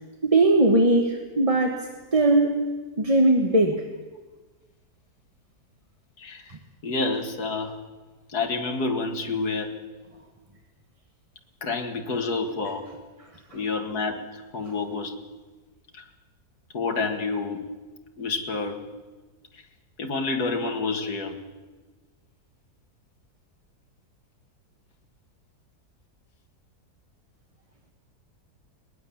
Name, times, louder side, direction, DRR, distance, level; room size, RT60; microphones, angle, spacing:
voice 1, 0.2-2.6 3.0-3.8 13.5-13.6, right 2 dB, 20° right, 3 dB, 1.3 m, -20 dB
voice 2, 6.2-6.5 6.8-7.8 8.3-9.7 11.6-12.9 13.5-15.2 15.9-16.0 16.7-17.6 18.2-18.8 19.5-19.6 20.0-21.4, left 3 dB, 70° left, 4 dB, 2.5 m, -28 dB
21.5 x 19.5 x 7.2 m, 1.3 s
omnidirectional pair, 1.7 m